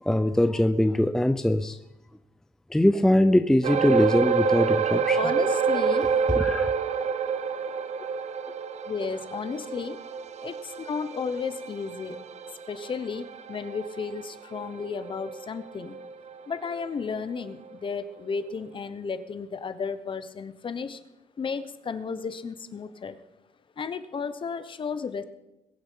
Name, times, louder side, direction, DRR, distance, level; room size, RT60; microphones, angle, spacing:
voice 1, 0.0-1.8 2.7-5.2 6.3-6.7, left 1 dB, 5° left, 9 dB, 0.5 m, -22 dB
sound 1, 3.6-16.3 16.7-16.9 17.4-17.5, right 6 dB, 55° right, 0.8 m, -28 dB
voice 2, 5.1-6.1 7.3-8.1 8.5-10.0 10.4-12.2 12.7-16.0 16.5-21.0 21.4-23.2 23.8-25.2, left 5 dB, 35° left, 12 dB, 1.0 m, -34 dB
21.5 x 7.3 x 5.7 m, 0.94 s
cardioid pair, 120°, 14 cm